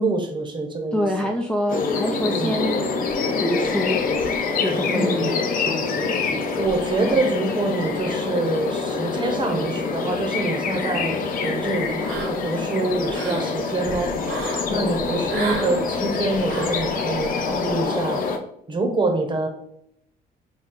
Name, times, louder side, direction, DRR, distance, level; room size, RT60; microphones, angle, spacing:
voice 1, 0.0-1.3 2.2-2.6 4.8-5.3 6.5-14.1 14.7-18.2 18.7-19.5, right 2 dB, 30° right, 4 dB, 0.8 m, -26 dB
voice 2, 0.9-2.9 3.4-4.0 4.6-6.7 14.7-15.1, left 1 dB, 5° left, 1 dB, 0.3 m, -27 dB
sound 1, 1.7-18.4, left 4 dB, 55° left, 0.6 m, -25 dB
sound 2, 12.1-12.6 12.9-13.5 14.2-14.7 15.3-15.7 16.5-16.8, right 3 dB, 90° right, 1.2 m, -31 dB
4.2 x 2.2 x 3.8 m, 0.71 s
cardioid pair, 110°, 17 cm